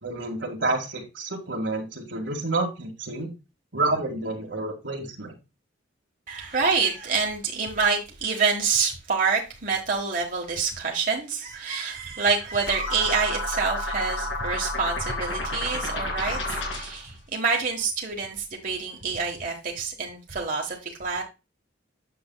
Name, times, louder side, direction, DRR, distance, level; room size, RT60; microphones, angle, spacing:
voice 1, 0.0-3.3 3.7-5.4, right 2 dB, 70° right, 1.9 m, -29 dB
voice 2, 6.3-21.2, right 5 dB, 45° right, 1.4 m, -27 dB
sound 1, 12.7-17.1, left 1 dB, 80° left, 3.1 m, -30 dB
8.6 x 6.9 x 2.3 m
head